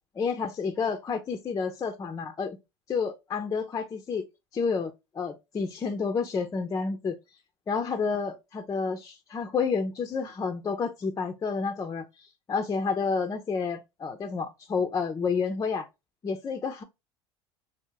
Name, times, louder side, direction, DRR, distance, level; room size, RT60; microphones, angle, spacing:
voice 1, 0.2-2.6 2.9-4.2 4.5-7.2 7.7-15.9 16.2-16.8, left 5 dB, 25° left, 0.4 m, -30 dB
3.3 x 2.0 x 2.9 m
hypercardioid pair, 80°, 14 cm